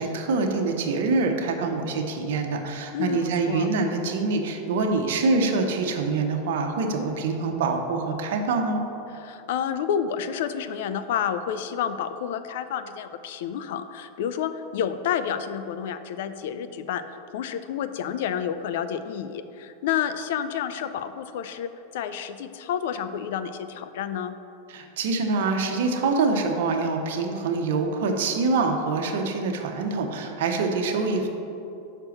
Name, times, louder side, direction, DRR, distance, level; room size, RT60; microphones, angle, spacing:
voice 1, 0.0-8.8 24.7-31.3, right 3 dB, 70° right, 3 dB, 0.8 m, -25 dB
voice 2, 2.9-3.7 9.1-17.0 17.3-24.4, left 8 dB, 70° left, 11 dB, 0.4 m, -30 dB
5.9 x 4.6 x 6.3 m, 2.8 s
hypercardioid pair, 110°, 0 cm